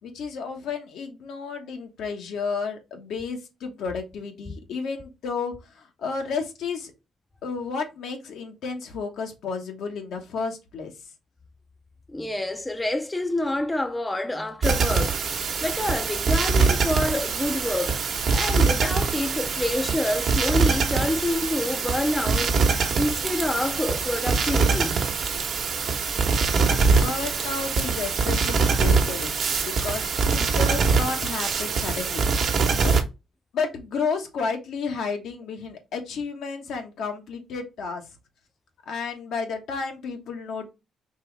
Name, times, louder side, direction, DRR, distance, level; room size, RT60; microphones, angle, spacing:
voice 1, 0.0-6.9 7.4-10.9 26.8-32.2 32.8-32.9 33.5-38.1 38.9-40.7, left 5 dB, 80° left, 1.3 m, -32 dB
voice 2, 12.1-15.2 15.6-18.0 18.3-22.5 22.9-25.0, left 1 dB, 15° left, 0.5 m, -27 dB
sound 1, 14.6-33.0, right 4 dB, 60° right, 1.0 m, -23 dB
4.5 x 3.0 x 3.3 m
cardioid pair, 90°, 0 cm